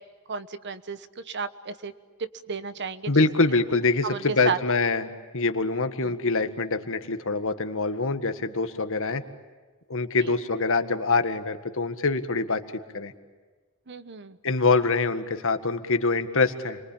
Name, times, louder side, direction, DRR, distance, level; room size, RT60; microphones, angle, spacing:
voice 1, 0.3-1.9 2.2-3.3 4.0-4.6 6.0-6.1 10.2-10.3 13.9-14.4, right 5 dB, 55° right, 12 dB, 1.2 m, -33 dB
voice 2, 3.1-9.2 9.9-12.6 12.9-13.1 14.4-16.8, left 3 dB, 60° left, 8 dB, 1.8 m, -25 dB
29.5 x 23.5 x 8.7 m, 1.3 s
head